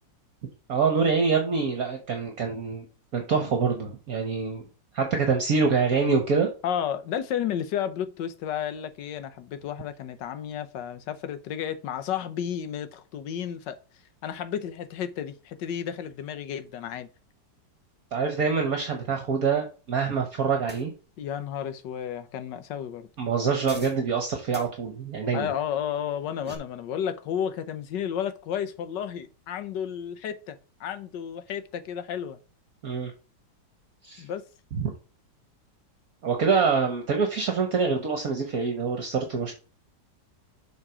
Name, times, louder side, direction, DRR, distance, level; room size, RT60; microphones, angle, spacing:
voice 1, 0.7-2.8 3.1-4.6 4.9-6.5 18.1-20.9 23.2-25.5 32.8-33.1 34.0-34.2 34.8-34.9 36.2-39.5, right 5 dB, 55° right, 1.4 m, -25 dB
voice 2, 6.6-13.8 14.2-17.1 21.2-23.1 25.3-32.4 34.2-34.4, left 9 dB, 75° left, 1.4 m, -32 dB
sound 1, 20.7-20.8 23.6-24.0 24.5-24.7 26.1-26.6, right 1 dB, 5° right, 1.3 m, -43 dB
7.3 x 3.9 x 4.8 m
omnidirectional pair, 2.0 m